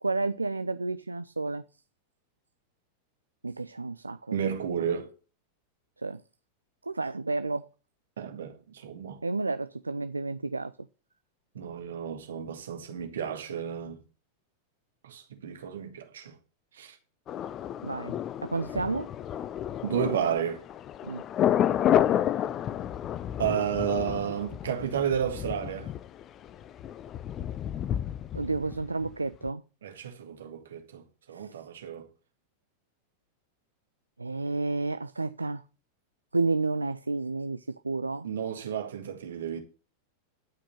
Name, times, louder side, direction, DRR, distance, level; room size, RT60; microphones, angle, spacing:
voice 1, 0.0-1.6 3.4-4.4 4.8-4.9 6.0-6.2 6.8-7.7 9.2-10.7 17.8-18.2 18.4-19.1 21.0-21.2 28.3-29.6 31.3-31.6 34.2-35.6 36.3-38.3, right 3 dB, 80° right, 0.4 m, -31 dB
voice 2, 4.3-5.1 8.2-9.2 11.6-14.0 15.0-16.3 16.7-17.0 19.8-20.6 23.4-25.9 29.8-31.0 31.3-32.1 38.2-39.6, right 8 dB, 65° right, 1.9 m, -32 dB
Thunder, 17.3-29.1 29.4-29.5, left 10 dB, 30° left, 0.5 m, -30 dB
12.0 x 5.1 x 6.7 m
figure-of-eight pair, 90°, 0 cm